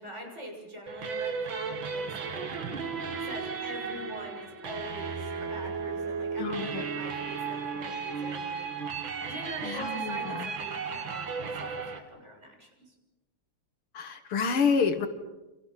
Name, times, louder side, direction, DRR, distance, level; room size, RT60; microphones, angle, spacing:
voice 1, 0.0-2.8 3.2-8.7 9.2-12.9, right 1 dB, 30° right, 1 dB, 7.2 m, -43 dB
sound 1, 0.9-12.0, right 5 dB, 65° right, 2.7 m, -35 dB
voice 2, 6.4-6.8 9.6-10.5 13.9-15.1, left 5 dB, 85° left, 9 dB, 2.7 m, -28 dB
29.5 x 27.0 x 5.9 m, 1.0 s
omnidirectional pair, 2.3 m